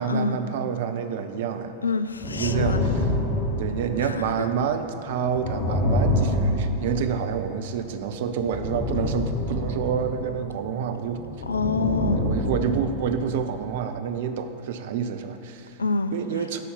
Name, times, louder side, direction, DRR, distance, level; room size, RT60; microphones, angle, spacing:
voice 1, 0.0-1.7 2.2-3.1 3.6-11.2 12.1-15.8 16.1-16.6, right 7 dB, 55° right, 8 dB, 0.5 m, -28 dB
voice 2, 1.8-2.8 11.5-12.2 15.8-16.1, left 3 dB, 75° left, 10 dB, 0.3 m, -26 dB
sound 1, 2.2-4.4 5.1-7.8 8.3-10.5 11.1-13.1, left 1 dB, 35° left, 1.2 m, -27 dB
9.8 x 4.2 x 5.8 m, 2.7 s
figure-of-eight pair, 90°, 0 cm